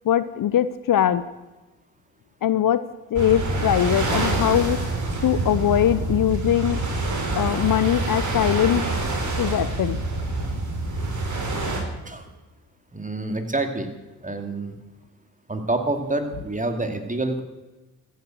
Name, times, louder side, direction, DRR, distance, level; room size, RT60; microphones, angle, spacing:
voice 1, 0.0-1.3 2.4-2.8 3.1-5.0 5.2-6.8 7.4-8.8 9.4-10.0, left 10 dB, 55° left, 15 dB, 0.7 m, -21 dB
sound 1, 3.1-11.8, right 2 dB, 45° right, 4.1 m, -26 dB
voice 2, 12.9-13.9 14.2-14.8 15.5-17.4, right 2 dB, 20° right, 6 dB, 2.5 m, -27 dB
14.5 x 9.1 x 8.0 m, 1.2 s
hypercardioid pair, 50°, 41 cm